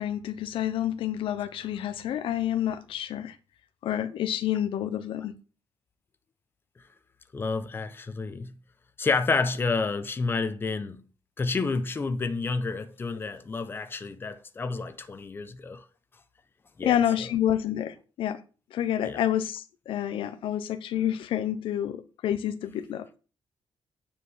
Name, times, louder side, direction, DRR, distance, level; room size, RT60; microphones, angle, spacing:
voice 1, 0.0-3.4 3.8-5.3 16.8-18.4 18.7-23.1, left 11 dB, 85° left, 1.0 m, -28 dB
voice 2, 7.3-8.5 9.0-11.0 11.4-15.8 16.8-17.3 19.0-19.2, left 4 dB, 25° left, 1.0 m, -30 dB
9.8 x 5.0 x 7.3 m
cardioid pair, 150°, 9 cm